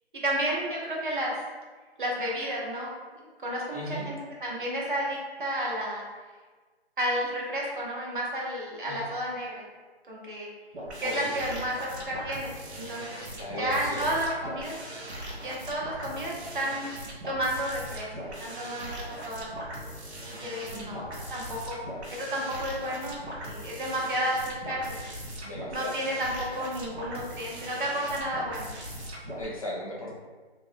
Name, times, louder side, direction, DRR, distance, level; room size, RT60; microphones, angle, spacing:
voice 1, 0.1-1.3 2.0-2.9 3.2-6.0 7.0-9.6 10.1-10.5 11.0-13.2 13.6-14.8 15.3-16.9 17.2-19.5 20.3-21.8 22.1-23.2 23.4-25.0 25.7-28.7, right 1 dB, 50° right, -3 dB, 0.7 m, -32 dB
voice 2, 3.7-4.1 8.8-9.0 11.0-11.3 13.4-14.2 20.7-21.0 25.4-26.0 29.4-30.1, equal, 35° left, -3 dB, 0.4 m, -37 dB
sound 1, 10.7-29.5, right 1 dB, 90° right, 0.9 m, -40 dB
2.5 x 2.0 x 3.1 m, 1.4 s
figure-of-eight pair, 165°, 32 cm